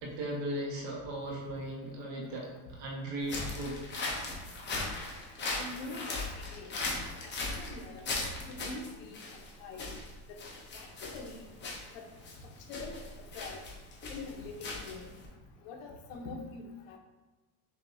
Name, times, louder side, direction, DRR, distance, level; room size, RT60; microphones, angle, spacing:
voice 1, 0.0-3.8, right 1 dB, 75° right, -2 dB, 1.5 m, -37 dB
sound 1, 3.2-15.3, left 3 dB, 25° left, 0.7 m, -38 dB
voice 2, 5.5-6.7 7.2-9.2 9.6-9.9 10.7-10.9 11.1-11.4 11.9-12.0 12.7-12.9 13.3-13.6 14.1-15.1 15.6-17.0, left 3 dB, 65° left, 2 dB, 1.0 m, -44 dB
6.3 x 2.7 x 2.7 m, 1.2 s
cardioid pair, 160°, 48 cm